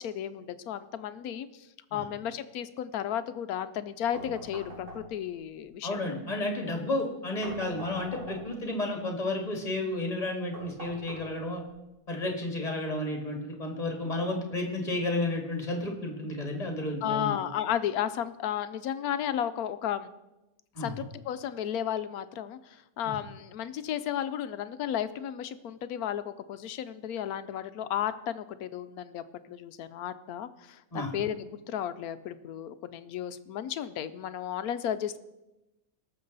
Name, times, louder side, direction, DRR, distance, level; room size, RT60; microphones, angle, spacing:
voice 1, 0.0-1.5 1.9-6.1 17.0-20.1 20.8-35.2, left 10 dB, 70° left, 12 dB, 0.9 m, -33 dB
sound 1, 4.1-5.4 7.4-8.7 10.5-11.7, equal, 85° right, 4.9 m, -43 dB
voice 2, 5.8-11.6 12.1-17.4 20.8-21.0 23.0-23.2 30.9-31.1, left 2 dB, 20° left, 2 dB, 2.0 m, -32 dB
18.5 x 6.8 x 4.0 m, 0.97 s
omnidirectional pair, 1.9 m